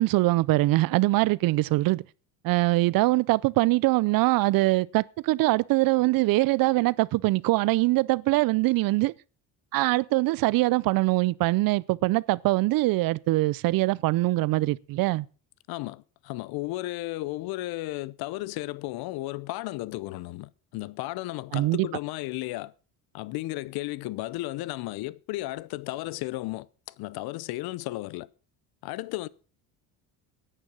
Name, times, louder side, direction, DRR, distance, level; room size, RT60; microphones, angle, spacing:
voice 1, 0.0-2.0 2.4-9.1 9.7-15.3 21.5-21.9, right 19 dB, 65° right, 0.5 m, -23 dB
voice 2, 15.7-22.7 23.1-28.3 28.8-29.3, left 18 dB, 70° left, 0.7 m, -34 dB
10.5 x 9.0 x 6.1 m
cardioid pair, 100°, 38 cm